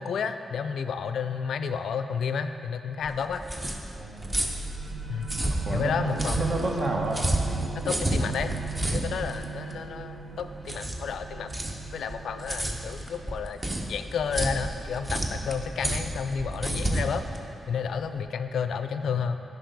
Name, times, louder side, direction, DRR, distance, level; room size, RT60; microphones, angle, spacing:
voice 1, 0.0-3.4 5.1-5.3 5.7-6.4 7.7-8.5 8.9-11.5 11.9-13.6 13.9-17.2 17.7-19.4, left 6 dB, 75° left, 9 dB, 0.3 m, -31 dB
sound 1, 3.0-18.2, right 1 dB, 30° right, 1.0 m, -31 dB
voice 2, 3.9-4.3 5.6-7.2 19.0-19.1, right 2 dB, 60° right, 0 dB, 1.1 m, -31 dB
sound 2, 4.2-15.6, right 5 dB, 85° right, 0.7 m, -38 dB
10.0 x 5.3 x 3.9 m, 2.7 s
supercardioid pair, 45°, 0 cm